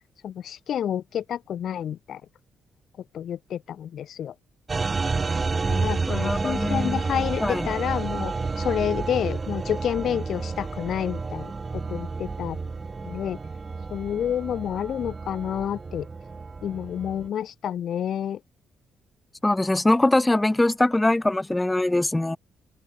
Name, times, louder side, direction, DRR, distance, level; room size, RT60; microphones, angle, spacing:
voice 1, 0.2-2.2 3.1-4.3 5.7-12.6 13.0-13.4 13.9-16.1 16.6-18.4, left 9 dB, 65° left, 3.5 m, -29 dB
sound 1, 4.7-17.3, right 4 dB, 30° right, 2.3 m, -30 dB
voice 2, 6.1-7.0 7.4-7.7 19.4-22.4, left 2 dB, 10° left, 5.6 m, -22 dB
cardioid pair, 90°, 0 cm